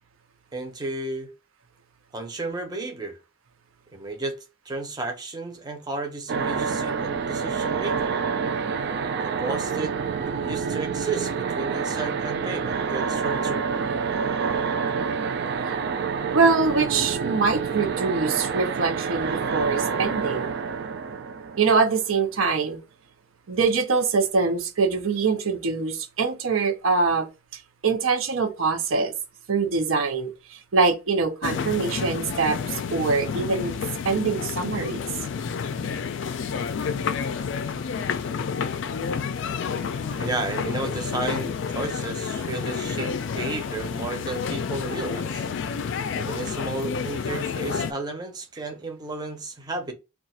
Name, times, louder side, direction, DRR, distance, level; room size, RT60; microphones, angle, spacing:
voice 1, 0.5-1.3 2.1-3.2 3.9-8.2 9.2-9.9 10.4-13.6 40.2-45.5 46.1-49.9, right 3 dB, 20° right, 0.6 m, -33 dB
sound 1, 6.3-22.2, right 5 dB, 55° right, 0.3 m, -28 dB
voice 2, 16.3-20.5 21.6-22.8 23.5-29.1 29.5-33.8 34.0-35.0, right 4 dB, 85° right, 0.7 m, -24 dB
sound 2, 31.4-47.9, left 6 dB, 65° left, 0.4 m, -30 dB
2.4 x 2.3 x 4.0 m
head